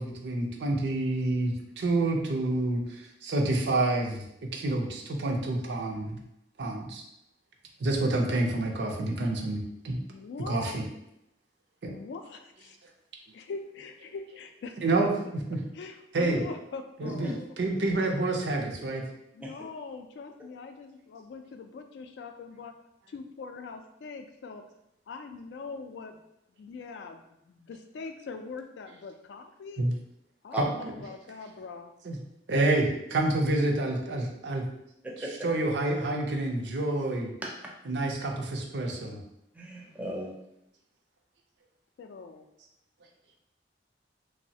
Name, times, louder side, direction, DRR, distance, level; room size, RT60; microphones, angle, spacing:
voice 1, 0.0-4.2 4.5-6.2 6.6-7.0 7.8-10.0 10.5-10.8 11.8-12.0 14.8-15.1 15.5-15.6 16.1-16.4 17.0-17.3 17.6-19.0 29.8-29.9 30.6-30.7 32.0-32.2 32.5-34.7 35.4-37.3 37.9-39.2, right 2 dB, 70° right, 1 dB, 0.5 m, -28 dB
voice 2, 10.1-10.8 11.8-12.8 13.3-14.8 15.7-17.5 19.3-22.7 23.1-24.6 25.1-26.2 26.6-29.9 30.4-31.9 42.0-42.5, left 4 dB, 75° left, 6 dB, 0.3 m, -42 dB
voice 3, 17.0-17.3 19.4-19.6 30.5-30.6 35.0-35.5 39.5-40.3, right 1 dB, 10° right, -2 dB, 0.4 m, -37 dB
3.1 x 2.0 x 2.7 m, 0.82 s
head